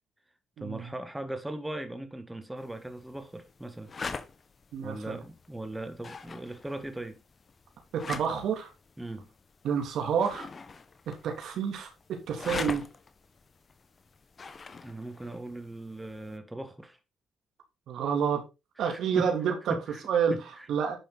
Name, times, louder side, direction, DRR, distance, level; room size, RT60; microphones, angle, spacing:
voice 1, 0.6-3.9 4.8-7.2 9.0-9.3 14.8-17.0 18.8-19.3 19.7-20.7, right 1 dB, 10° right, 1.6 m, -39 dB
sound 1, 2.6-16.4, left 4 dB, 40° left, 1.3 m, -44 dB
voice 2, 4.7-5.2 7.9-8.7 9.6-10.5 11.2-11.9 12.3-12.8 17.9-18.4 18.8-19.7 20.1-20.3 20.7-21.0, right 7 dB, 75° right, 3.0 m, -28 dB
11.0 x 5.8 x 4.1 m
cardioid pair, 80°, 0 cm